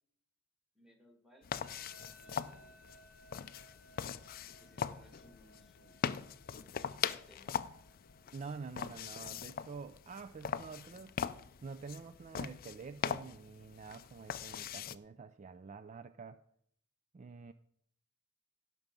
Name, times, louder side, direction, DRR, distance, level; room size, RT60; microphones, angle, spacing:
voice 1, 0.8-1.5 2.2-2.8 4.5-6.0 6.5-7.6, left 1 dB, ahead, 4 dB, 1.9 m, -64 dB
sound 1, 1.4-15.0, left 7 dB, 40° left, 0.4 m, -41 dB
sound 2, 1.6-14.6, right 1 dB, 85° right, 4.3 m, -65 dB
voice 2, 8.3-16.4 17.1-17.5, right 4 dB, 35° right, 12 dB, 0.4 m, -48 dB
17.0 x 6.1 x 5.2 m, 0.69 s
head